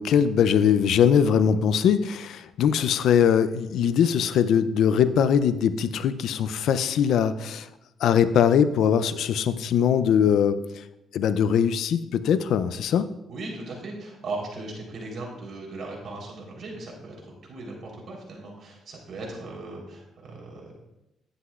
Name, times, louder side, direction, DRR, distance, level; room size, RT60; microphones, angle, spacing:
voice 1, 0.0-7.7 8.0-10.8 11.1-13.1, left 8 dB, 75° left, 13 dB, 0.5 m, -21 dB
voice 2, 13.3-20.7, right 2 dB, 55° right, -2 dB, 3.7 m, -38 dB
11.0 x 9.7 x 2.5 m, 0.90 s
cardioid pair, 90°, 0 cm